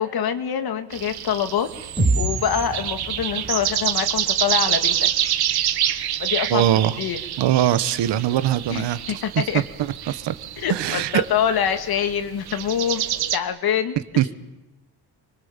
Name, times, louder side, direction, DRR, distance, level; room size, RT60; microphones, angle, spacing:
voice 1, 0.0-1.7 2.2-5.1 6.2-6.6 7.0-7.2 8.7-9.6 10.6-13.0 13.3-14.3, left 8 dB, 60° left, 8 dB, 2.2 m, -25 dB
sound 1, 0.9-13.4, right 11 dB, 65° right, 1.5 m, -27 dB
sound 2, 2.0-5.9, right 1 dB, 10° right, 4.9 m, -28 dB
voice 2, 6.5-6.9 7.4-9.0 10.1-10.3 10.7-11.2 14.2-14.3, right 12 dB, 85° right, 14 dB, 1.4 m, -21 dB
29.5 x 24.5 x 7.4 m, 0.95 s
cardioid pair, 165°, 41 cm